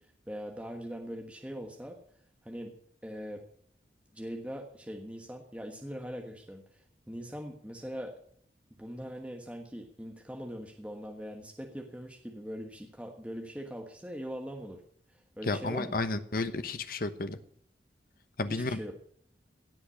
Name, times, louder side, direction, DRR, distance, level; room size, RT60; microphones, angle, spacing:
voice 1, 0.0-2.0 2.4-2.8 3.0-3.4 4.1-8.1 8.8-14.8 15.1-16.0 18.5-18.9, equal, 5° right, 2 dB, 1.3 m, -41 dB
voice 2, 15.4-17.4 18.4-18.8, left 2 dB, 55° left, 11 dB, 1.1 m, -32 dB
17.0 x 5.8 x 9.8 m, 0.63 s
head